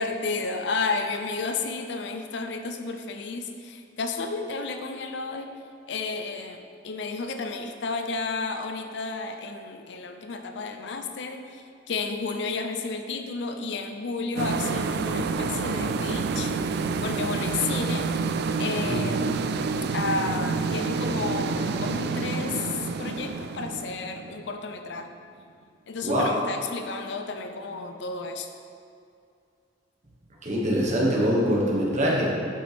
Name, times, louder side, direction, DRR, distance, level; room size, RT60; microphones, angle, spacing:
voice 1, 0.0-5.5 5.9-18.1 18.6-19.5 19.9-25.1 25.9-28.5, left 4 dB, 65° left, 6 dB, 0.5 m, -32 dB
sound 1, 14.4-24.9, right 4 dB, 60° right, 0.3 m, -28 dB
voice 2, 30.4-32.3, equal, 40° right, -4 dB, 1.3 m, -23 dB
7.1 x 5.3 x 3.5 m, 2.4 s
head